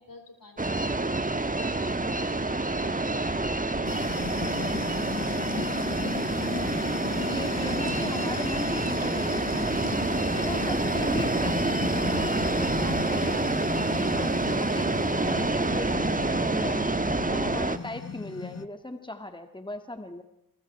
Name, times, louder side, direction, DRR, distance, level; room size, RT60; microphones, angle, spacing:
voice 1, 0.0-6.0 6.3-6.7 7.2-7.9, left 2 dB, 75° left, 4 dB, 5.2 m, -48 dB
sound 1, 0.6-17.8, right 2 dB, 25° right, 1.4 m, -27 dB
sound 2, 3.8-18.7, left 5 dB, 45° left, 1.1 m, -36 dB
voice 2, 7.1-9.9 10.3-16.9 17.3-20.2, left 2 dB, 15° left, 7 dB, 2.1 m, -38 dB
29.0 x 24.0 x 4.6 m, 0.88 s
wide cardioid pair, 65°, 35 cm